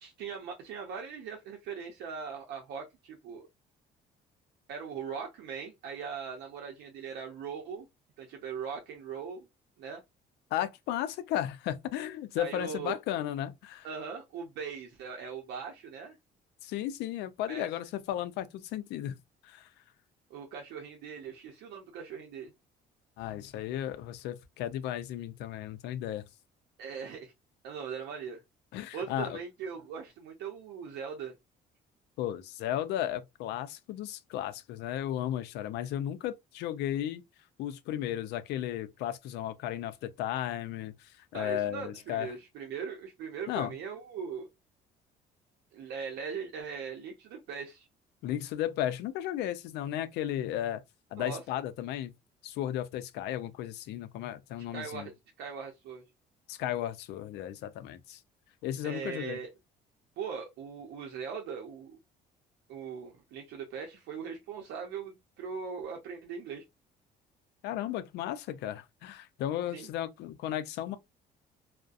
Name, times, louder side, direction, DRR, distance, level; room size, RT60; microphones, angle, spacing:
voice 1, 0.0-3.4 4.7-7.9 8.2-9.5 9.8-10.0 12.4-13.0 13.8-16.2 17.5-17.7 20.3-22.5 26.8-27.3 27.6-28.4 28.9-31.3 41.3-44.5 45.7-47.9 51.2-51.4 54.7-56.0 58.8-59.5 60.2-62.0 62.7-66.6 69.7-69.9, right 6 dB, 80° right, 0.6 m, -40 dB
voice 2, 10.5-13.9 16.6-19.2 19.4-19.7 23.2-26.2 28.7-29.4 32.2-37.2 37.6-42.3 43.5-43.7 48.2-50.8 51.1-52.1 52.4-55.1 56.5-58.2 58.6-59.4 67.6-71.0, left 12 dB, 80° left, 0.5 m, -34 dB
2.3 x 2.1 x 2.5 m
cardioid pair, 110°, 17 cm